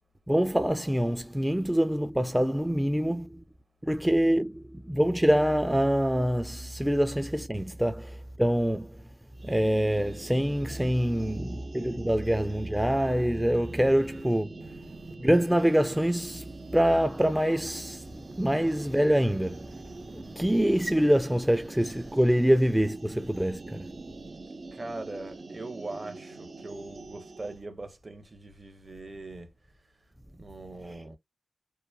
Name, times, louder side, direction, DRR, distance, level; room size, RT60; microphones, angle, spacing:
voice 1, 0.3-3.4 3.8-9.1 9.4-24.3 30.8-31.0, equal, 10° right, 0.4 m, -26 dB
sound 1, 9.3-27.6, right 3 dB, 65° right, 0.5 m, -45 dB
voice 2, 24.7-29.5 30.4-31.2, right 2 dB, 50° right, 1.0 m, -41 dB
3.0 x 2.2 x 2.2 m
cardioid pair, 40°, 0 cm